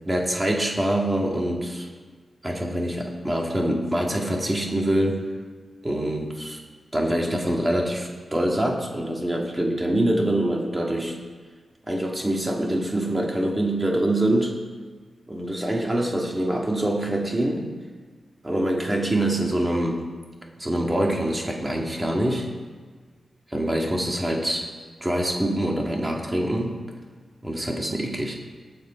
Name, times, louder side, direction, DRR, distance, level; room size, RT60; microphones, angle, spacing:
voice 1, 0.1-1.9 2.4-5.2 5.8-6.6 6.9-11.2 11.9-14.5 15.3-17.7 18.4-20.0 20.6-22.5 23.5-24.6 25.0-26.8 27.4-28.3, right 1 dB, 15° right, 0 dB, 1.9 m, -25 dB
19.5 x 6.8 x 5.1 m, 1.5 s
wide cardioid pair, 165°, 0 cm